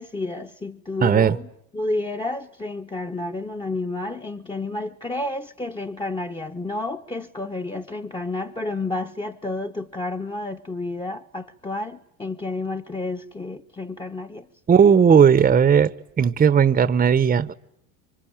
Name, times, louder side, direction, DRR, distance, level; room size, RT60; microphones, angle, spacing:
voice 1, 0.0-14.5, left 2 dB, 10° left, 1.1 m, -30 dB
voice 2, 1.0-1.4 14.7-15.9 16.2-17.5, right 7 dB, 20° right, 1.0 m, -16 dB
26.5 x 24.5 x 8.9 m
supercardioid pair, 105°, 43 cm